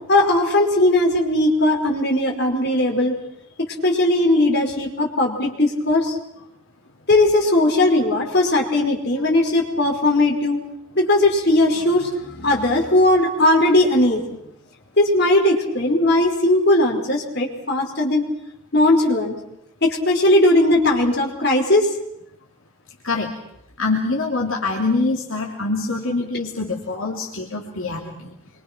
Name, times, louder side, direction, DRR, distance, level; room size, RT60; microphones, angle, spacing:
voice 1, 0.1-3.1 3.8-6.2 7.1-10.6 11.0-14.4 15.0-18.2 18.7-19.4 19.8-21.9, left 1 dB, 50° left, 0 dB, 5.2 m, -18 dB
voice 2, 23.8-28.1, left 3 dB, 70° left, -1 dB, 3.0 m, -24 dB
27.0 x 24.5 x 6.2 m, 0.79 s
head